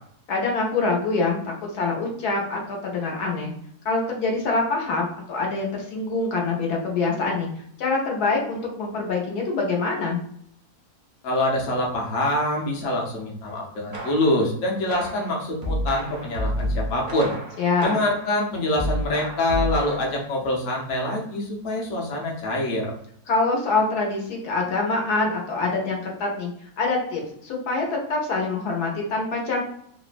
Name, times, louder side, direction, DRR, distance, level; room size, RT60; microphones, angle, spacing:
voice 1, 0.3-3.5 3.8-7.5 7.8-10.2 17.6-18.0 23.3-26.5 26.8-29.6, left 3 dB, 85° left, 0 dB, 1.2 m, -25 dB
voice 2, 11.2-17.3 17.8-22.9, left 1 dB, 60° left, -2 dB, 0.9 m, -25 dB
sound 1, 13.9-14.5 14.9-18.3 18.8-20.3, equal, 55° right, 0.5 m, -30 dB
3.0 x 2.0 x 2.4 m, 0.67 s
omnidirectional pair, 1.6 m